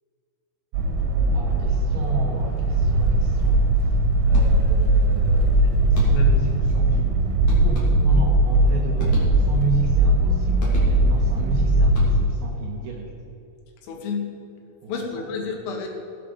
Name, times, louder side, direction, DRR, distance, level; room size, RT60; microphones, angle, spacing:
sound 1, 0.7-12.2, right 1 dB, 90° right, 3.8 m, -19 dB
voice 1, 1.3-3.9 4.3-5.6 5.9-13.1 14.8-15.3, right 5 dB, 70° right, 0 dB, 2.5 m, -32 dB
sound 2, 4.3-4.9 5.9-6.5 7.5-8.3 9.0-9.8 10.6-11.3 11.8-12.5, left 2 dB, 40° left, 3.5 m, -35 dB
voice 2, 13.8-14.3 14.9-15.9, left 5 dB, 85° left, 2 dB, 4.2 m, -30 dB
17.0 x 8.0 x 4.9 m, 2.6 s
omnidirectional pair, 5.7 m